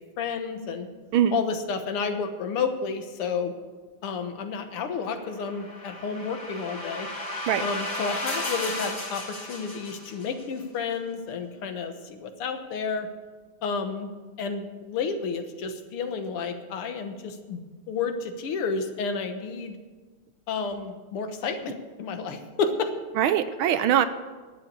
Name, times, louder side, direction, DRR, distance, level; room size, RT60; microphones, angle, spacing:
voice 1, 0.2-0.9 1.3-3.5 4.0-7.1 7.6-13.1 13.6-14.1 14.4-17.6 17.9-19.8 20.5-22.9, left 5 dB, 90° left, 7 dB, 2.1 m, -31 dB
sound 1, 5.2-10.4, left 1 dB, 40° left, 3.9 m, -34 dB
voice 2, 23.2-24.1, right 10 dB, 75° right, 12 dB, 1.5 m, -22 dB
11.5 x 8.4 x 8.3 m, 1.4 s
omnidirectional pair, 2.4 m